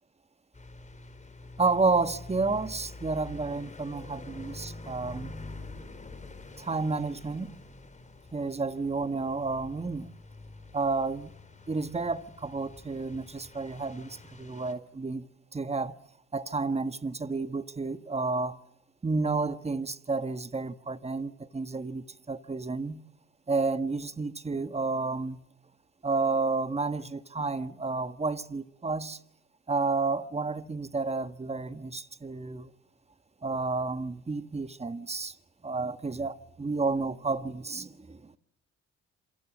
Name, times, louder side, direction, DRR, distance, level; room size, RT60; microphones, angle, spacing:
sound 1, 0.5-14.7, left 2 dB, 25° left, 4.8 m, -46 dB
voice 1, 1.6-5.3 6.6-7.5 8.3-10.1 10.7-11.3 11.7-15.3 15.5-15.9 16.3-18.6 19.0-23.0 23.5-25.4 26.0-29.2 29.7-32.7 33.4-35.3 35.6-38.4, right 3 dB, 20° right, 1.5 m, -31 dB
27.5 x 25.5 x 7.7 m
cardioid pair, 90°, 30 cm